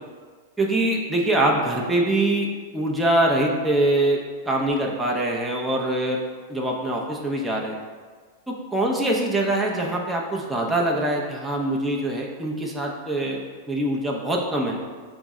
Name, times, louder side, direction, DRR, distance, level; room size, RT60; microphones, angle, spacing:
voice 1, 0.6-4.2 4.4-6.2 6.5-7.8 8.5-14.8, right 1 dB, 10° right, -2 dB, 0.6 m, -23 dB
5.2 x 2.0 x 3.5 m, 1.5 s
hypercardioid pair, 110°, 0 cm